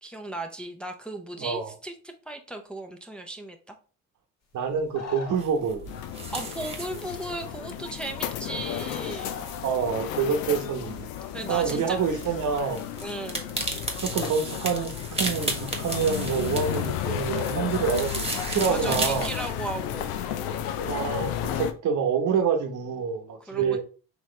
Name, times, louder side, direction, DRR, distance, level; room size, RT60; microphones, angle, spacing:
voice 1, 0.0-3.8 6.3-9.5 11.3-12.0 13.0-13.5 18.6-20.2 23.5-23.8, right 2 dB, 5° left, 0.6 m, -36 dB
voice 2, 1.4-1.7 4.5-5.8 9.6-11.1 11.5-12.9 14.0-19.3 20.9-23.8, right 6 dB, 60° right, 0.9 m, -27 dB
sound 1, 4.7-5.6 6.8-6.9 7.6-7.7 8.0-8.7 9.1-9.6 9.9-10.4, left 5 dB, 50° left, 1.5 m, -41 dB
sound 2, 5.4-19.7, right 2 dB, 15° right, 1.2 m, -35 dB
sound 3, 5.9-21.7, left 10 dB, 80° left, 0.5 m, -33 dB
3.9 x 3.0 x 3.2 m
supercardioid pair, 65°, 35 cm